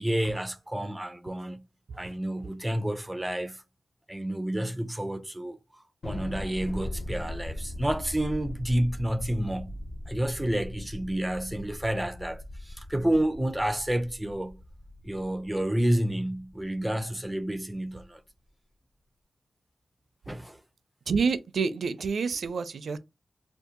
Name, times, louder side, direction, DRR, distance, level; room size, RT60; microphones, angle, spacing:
voice 1, 0.0-1.6 2.0-3.6 4.1-5.6 6.0-9.8 10.1-14.6 15.0-18.2 20.3-20.6, right 1 dB, 5° right, 0.4 m, -30 dB
Thunder, 6.0-16.7, left 1 dB, 60° left, 1.1 m, -40 dB
voice 2, 21.1-23.0, right 5 dB, 75° right, 0.4 m, -28 dB
2.7 x 2.4 x 3.6 m
wide cardioid pair, 125°, 0 cm